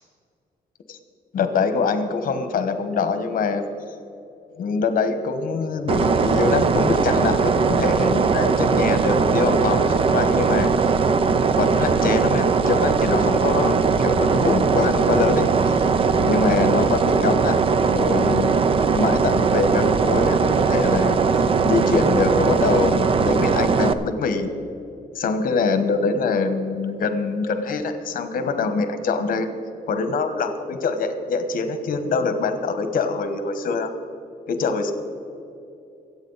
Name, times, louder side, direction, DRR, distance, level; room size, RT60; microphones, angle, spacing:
voice 1, 1.3-3.7 4.5-10.7 11.6-15.8 16.2-17.6 17.9-18.5 18.9-21.2 21.6-24.5 25.1-29.5 29.9-33.9 34.5-34.9, left 4 dB, 60° left, 8 dB, 1.2 m, -24 dB
sound 1, 5.9-23.9, right 5 dB, 35° right, 0.5 m, -19 dB
23.0 x 8.6 x 4.0 m, 2.7 s
wide cardioid pair, 165°, 16 cm